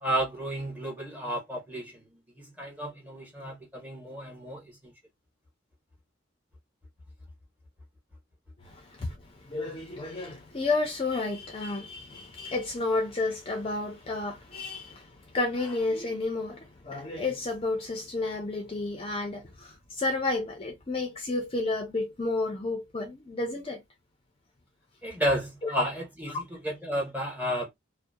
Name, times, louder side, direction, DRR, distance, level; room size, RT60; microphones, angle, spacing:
voice 1, 0.0-2.0 2.4-4.9 25.0-27.7, equal, 10° right, 0.9 m, -32 dB
voice 2, 8.6-23.8 26.3-26.4, left 2 dB, 30° left, 0.5 m, -31 dB
2.7 x 2.0 x 2.2 m
head